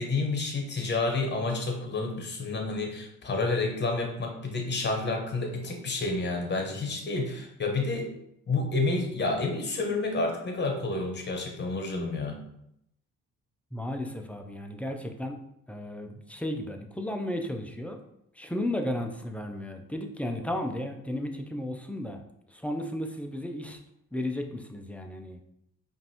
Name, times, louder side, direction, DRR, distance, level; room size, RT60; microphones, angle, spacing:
voice 1, 0.0-8.1 8.5-12.4, left 3 dB, 35° left, 2 dB, 1.0 m, -29 dB
voice 2, 13.7-15.4 15.7-18.0 18.3-22.2 22.5-23.8 24.1-25.4, left 1 dB, 5° left, 4 dB, 0.5 m, -34 dB
5.1 x 2.6 x 2.9 m, 0.77 s
cardioid pair, 90°, 30 cm